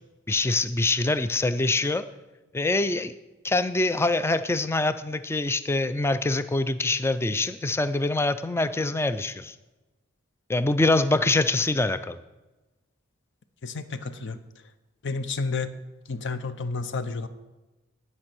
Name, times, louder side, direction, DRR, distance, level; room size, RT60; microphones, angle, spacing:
voice 1, 0.3-2.0 2.5-3.1 3.4-9.5 10.5-12.2, left 2 dB, 10° left, 13 dB, 0.3 m, -24 dB
voice 2, 13.6-14.4 15.0-15.7 16.1-17.3, left 4 dB, 60° left, 11 dB, 0.7 m, -31 dB
11.5 x 5.4 x 6.0 m, 1.1 s
head